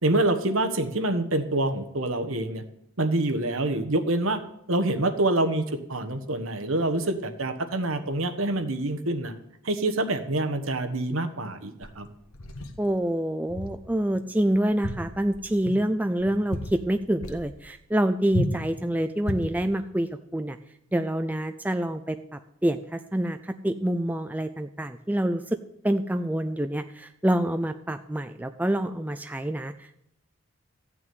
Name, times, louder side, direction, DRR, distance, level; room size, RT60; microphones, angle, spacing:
voice 1, 0.0-2.6 3.0-4.4 4.7-9.3 9.6-12.1, right 2 dB, 70° right, 8 dB, 1.3 m, -26 dB
sound 1, 11.8-12.8 13.5-13.8 14.1-14.3 14.7-15.8 16.2-16.9 17.2-17.5 18.3-18.7 19.2-19.6, left 1 dB, 80° left, 1.6 m, -33 dB
voice 2, 12.8-20.6 20.9-22.2 22.6-25.6 25.8-30.0, right 1 dB, 5° right, 8 dB, 0.4 m, -27 dB
14.0 x 6.0 x 9.4 m, 0.79 s
head